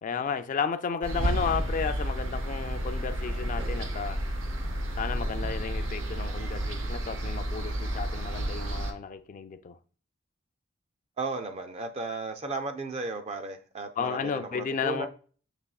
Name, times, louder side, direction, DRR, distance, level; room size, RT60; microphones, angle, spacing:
voice 1, 0.0-4.2 5.0-9.8 14.0-15.1, left 6 dB, 40° left, 0.3 m, -33 dB
sound 1, 1.0-8.9, right 1 dB, 70° right, 0.7 m, -31 dB
voice 2, 11.2-15.1, right 3 dB, 30° right, 0.4 m, -34 dB
6.9 x 3.0 x 2.3 m
head